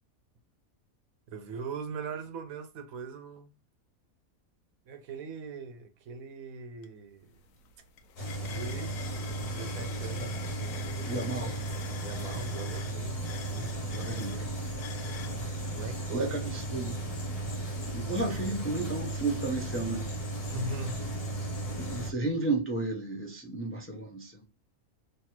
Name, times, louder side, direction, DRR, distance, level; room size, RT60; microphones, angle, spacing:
voice 1, 1.3-3.5 4.9-7.4 8.5-9.0 9.3-11.1 12.0-14.0 15.7-16.5 20.5-21.0, right 3 dB, 75° right, 1.2 m, -41 dB
sound 1, 6.8-6.9 7.2-15.4, left 8 dB, 75° left, 1.0 m, -47 dB
sound 2, 8.2-22.1, right 2 dB, 45° left, 1.3 m, -35 dB
voice 2, 11.1-11.6 13.9-14.5 16.1-17.0 17.9-20.1 21.7-24.4, right 2 dB, 15° left, 0.5 m, -33 dB
3.3 x 2.7 x 4.3 m
omnidirectional pair, 1.5 m